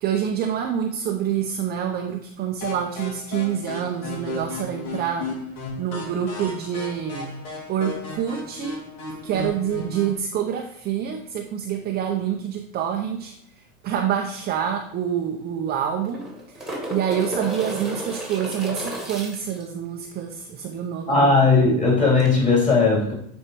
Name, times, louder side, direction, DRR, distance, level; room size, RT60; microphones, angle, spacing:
voice 1, 0.0-5.3 5.8-7.4 7.7-8.8 9.2-13.3 13.8-21.3 21.7-21.8, right 8 dB, 25° right, 2 dB, 0.5 m, -27 dB
sound 1, 2.6-10.2, left 2 dB, 70° left, 3.1 m, -35 dB
sound 2, 14.4-14.5 14.8-14.9 15.9-19.6 22.2-22.3, right 2 dB, ahead, 1.6 m, -32 dB
voice 2, 21.1-23.1, left 3 dB, 15° left, -3 dB, 2.9 m, -17 dB
9.6 x 4.4 x 3.3 m, 0.69 s
supercardioid pair, 135°, 43 cm